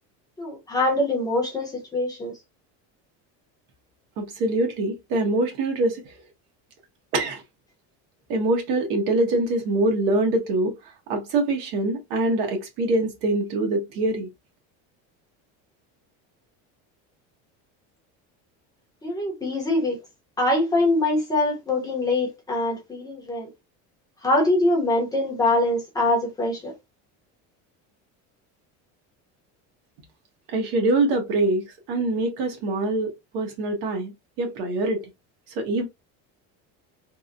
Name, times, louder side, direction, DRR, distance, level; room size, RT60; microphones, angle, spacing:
voice 1, 0.4-2.3 19.0-20.0 20.4-23.5 24.2-26.7, left 2 dB, 10° left, 0.8 m, -23 dB
voice 2, 4.2-6.1 7.1-7.4 8.3-10.7 11.1-14.3 30.5-34.1 34.4-35.1 35.5-35.9, right 2 dB, 70° right, 1.3 m, -24 dB
3.5 x 2.2 x 2.6 m
cardioid pair, 180°, 34 cm